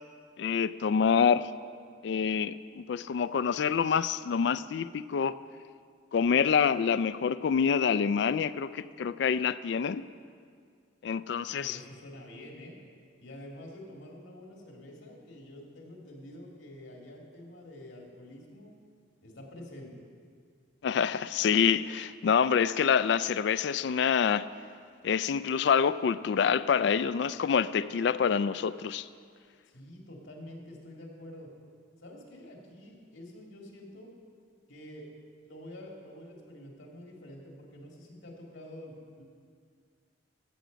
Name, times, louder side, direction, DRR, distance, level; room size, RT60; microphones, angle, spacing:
voice 1, 0.4-1.5 2.0-5.4 6.1-10.1 11.0-11.8 20.8-24.5 25.0-29.1, left 7 dB, 60° left, 16 dB, 0.3 m, -26 dB
voice 2, 11.4-12.7 13.2-18.7 19.2-19.9 29.7-31.5 32.0-34.1 34.7-35.1 35.4-39.2, left 1 dB, 75° left, 0 dB, 2.1 m, -47 dB
14.5 x 8.0 x 5.1 m, 2.1 s
head